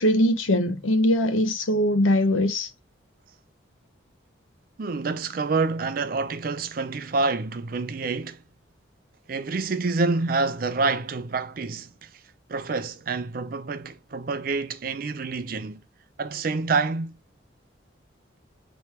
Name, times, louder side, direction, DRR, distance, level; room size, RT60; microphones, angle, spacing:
voice 1, 0.0-2.7, left 1 dB, 85° left, 0.7 m, -21 dB
voice 2, 4.8-8.4 9.3-12.1 12.5-15.8 16.2-17.2, right 3 dB, 45° right, 0.4 m, -27 dB
3.3 x 3.1 x 4.3 m
head